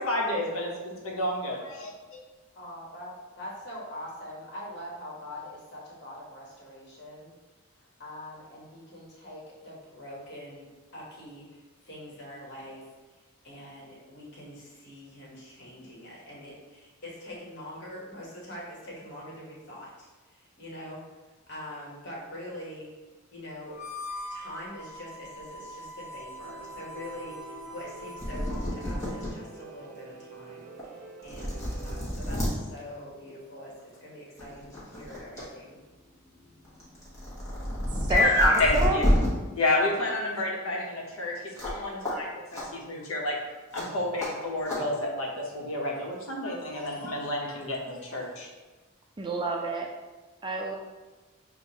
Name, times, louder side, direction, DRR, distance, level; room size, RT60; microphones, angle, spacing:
voice 1, 0.0-2.2 38.1-39.0 39.5-48.5, left 1 dB, 75° left, -2 dB, 0.8 m, -29 dB
voice 2, 2.5-7.3 8.0-12.9 13.4-21.0 21.5-22.9 23.3-23.7 24.3-35.8, left 1 dB, 50° left, -5 dB, 1.1 m, -44 dB
Harmonica, 23.7-29.3, left 1 dB, 35° left, 0.6 m, -43 dB
Piano, 26.4-32.1, right 2 dB, 90° right, 0.5 m, -47 dB
sound 1, 28.2-29.3 29.8-29.9 30.8-30.9 31.2-32.5 33.8-34.0 34.4-35.4 35.8-39.3 41.6-41.8 42.0-42.1 42.5-42.6 43.7-43.8 44.2-44.3 44.7-44.8, equal, 15° left, 1.0 m, -29 dB
voice 3, 38.0-39.2 49.2-49.9 50.4-50.7, right 2 dB, 20° right, 0 dB, 0.3 m, -29 dB
6.2 x 2.2 x 2.8 m, 1.2 s
head